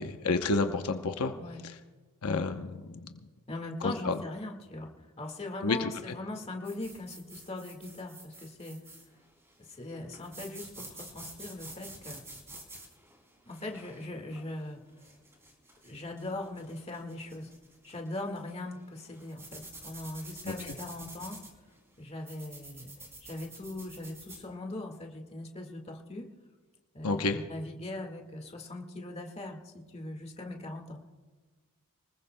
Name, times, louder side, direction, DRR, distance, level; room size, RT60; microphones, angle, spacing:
voice 1, 0.0-1.3 2.2-3.1 3.8-4.2 5.6-5.9 20.4-20.7 27.0-27.4, left 3 dB, 80° left, 6 dB, 0.8 m, -30 dB
voice 2, 3.5-4.9 5.2-8.8 9.7-12.2 13.5-14.8 15.8-17.5 17.8-21.4 22.0-26.3 26.9-31.1, left 2 dB, 30° left, 2 dB, 1.7 m, -40 dB
sound 1, 6.6-24.4, right 2 dB, 10° right, 2.8 m, -50 dB
24.0 x 20.5 x 2.2 m, 1.3 s
head